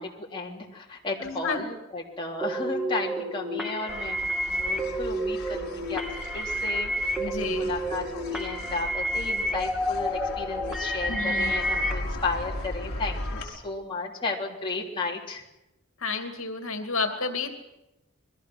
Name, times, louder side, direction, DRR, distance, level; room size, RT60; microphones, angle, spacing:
voice 1, 0.0-4.2 4.5-6.0 6.3-15.4, left 3 dB, 25° left, -2 dB, 3.5 m, -34 dB
voice 2, 1.2-1.6 7.2-7.7 11.1-11.6 16.0-17.5, left 4 dB, 75° left, 5 dB, 2.6 m, -31 dB
sound 1, 2.4-11.9, equal, ahead, 2.6 m, -29 dB
sound 2, 3.9-13.4, left 1 dB, 45° left, 5.6 m, -38 dB
29.0 x 21.5 x 6.2 m, 0.92 s
head